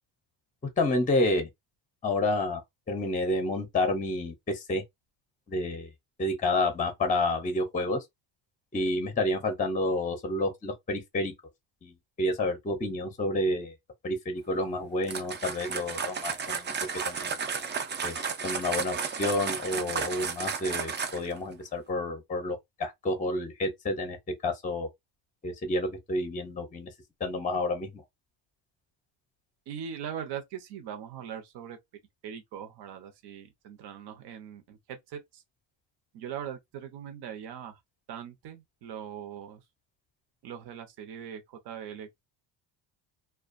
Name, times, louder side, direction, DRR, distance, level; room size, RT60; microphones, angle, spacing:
voice 1, 0.8-1.5 2.0-2.6 2.9-4.8 5.5-5.9 6.2-8.0 8.7-11.3 11.8-13.7 14.0-16.7 17.0-17.4 18.0-24.2 24.4-24.9 25.4-26.9 27.2-28.0, left 2 dB, 15° left, 0.6 m, -29 dB
sound 1, 15.0-21.4, right 6 dB, 25° right, 0.3 m, -33 dB
voice 2, 29.7-31.8 32.2-35.4 36.1-37.8 38.1-39.6 40.4-42.2, right 8 dB, 55° right, 0.8 m, -41 dB
2.3 x 2.3 x 2.5 m
cardioid pair, 115°, 47 cm